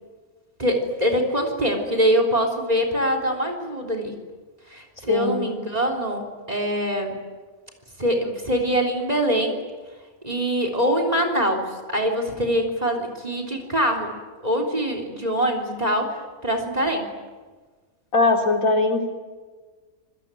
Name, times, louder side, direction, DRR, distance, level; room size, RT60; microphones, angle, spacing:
voice 1, 0.6-4.2 4.7-7.2 8.0-9.6 10.2-14.1 14.4-16.2 16.4-17.1, equal, 25° right, 4 dB, 3.7 m, -23 dB
voice 2, 5.1-5.5 18.1-19.1, left 3 dB, 65° left, 3 dB, 3.8 m, -20 dB
27.5 x 21.0 x 9.1 m, 1.4 s
omnidirectional pair, 1.5 m